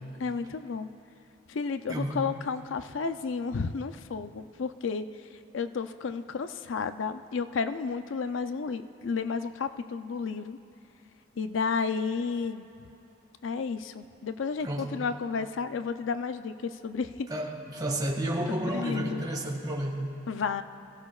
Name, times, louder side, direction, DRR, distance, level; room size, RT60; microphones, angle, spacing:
voice 1, 0.2-0.9 1.5-5.1 5.5-10.6 11.4-12.7 13.4-17.3 18.5-19.3 20.3-20.6, left 5 dB, 80° left, 10 dB, 0.5 m, -32 dB
voice 2, 17.3-20.1, right 1 dB, 20° right, -1 dB, 1.9 m, -31 dB
26.5 x 16.0 x 2.4 m, 2.7 s
head